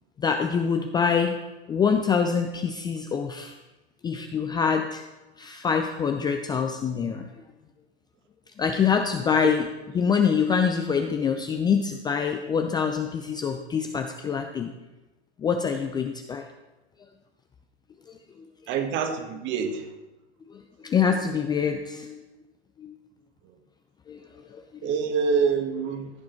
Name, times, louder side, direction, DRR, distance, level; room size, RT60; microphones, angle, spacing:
voice 1, 0.2-1.4 1.7-3.5 4.0-5.0 5.4-7.2 8.6-9.7 9.9-14.7 15.4-16.4 20.5-22.2 22.8-22.9 24.1-24.2 24.5-24.6, left 6 dB, 10° left, 5 dB, 0.5 m, -25 dB
voice 2, 18.7-19.9 24.8-26.1, right 6 dB, 35° right, 6 dB, 1.7 m, -26 dB
15.5 x 7.4 x 4.5 m, 1.1 s
figure-of-eight pair, 105°, 34 cm